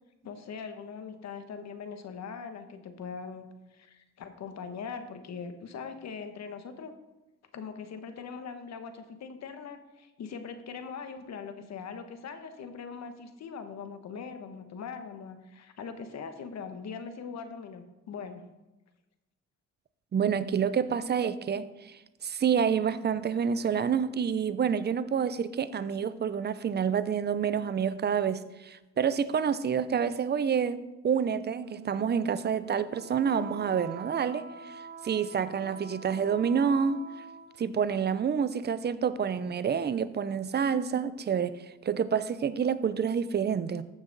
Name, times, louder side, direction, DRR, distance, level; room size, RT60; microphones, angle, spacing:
voice 1, 0.2-3.5 3.7-6.9 7.5-18.4, left 6 dB, 60° left, 8 dB, 1.2 m, -41 dB
voice 2, 20.1-34.7 35.0-37.0 37.6-41.5 41.8-43.8, right 7 dB, 35° right, 14 dB, 0.6 m, -28 dB
Wind instrument woodwind instrument, 31.5-37.7, right 5 dB, 75° right, 0.9 m, -46 dB
14.5 x 5.8 x 4.0 m, 1.0 s
cardioid pair, 90°, 30 cm